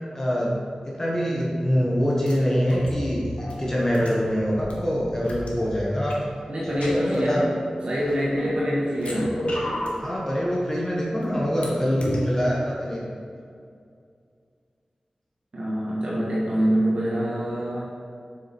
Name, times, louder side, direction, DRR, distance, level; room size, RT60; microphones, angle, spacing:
voice 1, 0.1-0.5 0.8-6.2 6.6-7.5 8.3-8.5 10.0-13.1, equal, 20° left, -5 dB, 1.5 m, -24 dB
sound 1, 2.3-2.4 2.7-4.7 5.2-5.5 6.1-6.2 6.7-7.2 7.9-8.5 8.9-10.0 10.7-11.6 12.0-12.2, left 1 dB, 70° left, 1.5 m, -32 dB
voice 2, 6.5-7.4 7.8-9.3 15.5-17.9, equal, 65° right, -7 dB, 1.6 m, -25 dB
7.5 x 6.5 x 4.5 m, 2.3 s
wide cardioid pair, 95°, 2 cm